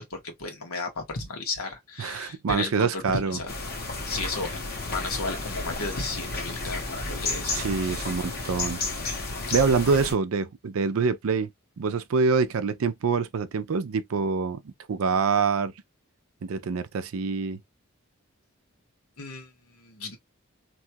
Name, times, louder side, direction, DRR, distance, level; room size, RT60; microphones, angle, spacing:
voice 1, 0.0-3.6 4.1-4.5 4.9-7.5 7.8-8.1 19.2-20.2, left 3 dB, 85° left, 1.3 m, -34 dB
voice 2, 2.0-3.4 7.5-8.8 9.5-11.5 11.8-15.7 16.4-17.6, right 5 dB, 75° right, 0.5 m, -25 dB
sound 1, 3.5-10.1, left 3 dB, 45° left, 1.0 m, -32 dB
3.0 x 2.3 x 2.8 m
head